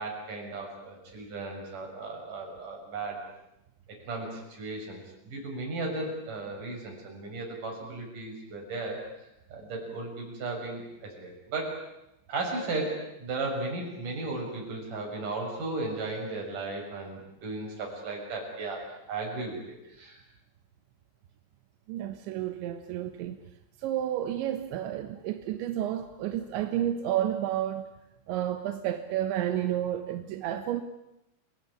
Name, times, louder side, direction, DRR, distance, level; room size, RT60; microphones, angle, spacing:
voice 1, 0.0-3.2 3.9-9.0 9.5-11.8 12.3-20.2, right 3 dB, 45° right, 0 dB, 8.3 m, -35 dB
voice 2, 21.9-23.4 23.8-27.9 28.3-30.8, right 11 dB, 85° right, 7 dB, 3.6 m, -31 dB
29.0 x 19.5 x 9.9 m, 0.88 s
omnidirectional pair, 5.1 m